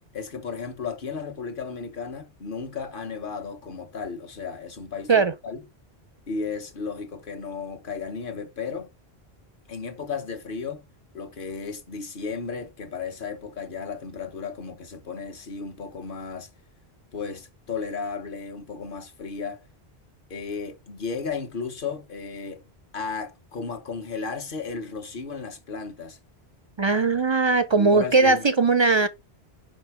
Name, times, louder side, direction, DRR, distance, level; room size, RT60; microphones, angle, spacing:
voice 1, 0.1-5.6 6.3-8.9 9.7-10.8 11.1-16.5 17.1-19.7 20.3-22.6 22.9-26.2 27.8-28.4, left 5 dB, 55° left, 1.2 m, -34 dB
voice 2, 26.8-29.1, right 4 dB, 45° right, 0.4 m, -19 dB
5.7 x 5.1 x 4.5 m
omnidirectional pair, 1.1 m